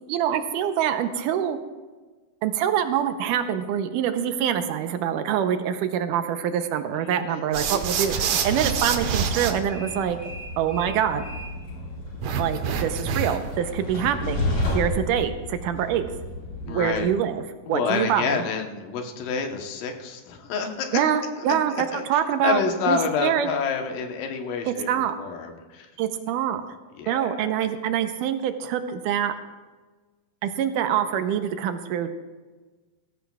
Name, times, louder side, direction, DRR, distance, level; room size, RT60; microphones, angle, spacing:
voice 1, 0.1-1.6 2.4-10.2 10.6-11.2 12.4-14.4 14.7-16.1 16.7-17.4 17.7-18.4 20.9-22.6 22.9-23.5 24.7-25.2 26.0-26.6 27.1-29.3 30.4-32.3, right 9 dB, 80° right, 8 dB, 2.2 m, -25 dB
voice 2, 7.0-7.5 16.7-17.1 17.7-21.0 21.4-25.9 27.0-27.7, left 6 dB, 80° left, 4 dB, 2.8 m, -29 dB
sound 1, 7.5-9.5 12.2-13.5, right 6 dB, 65° right, 1.9 m, -26 dB
Train, 8.6-17.0, left 2 dB, 45° left, 4.7 m, -32 dB
18.5 x 15.5 x 2.3 m, 1.3 s
omnidirectional pair, 3.8 m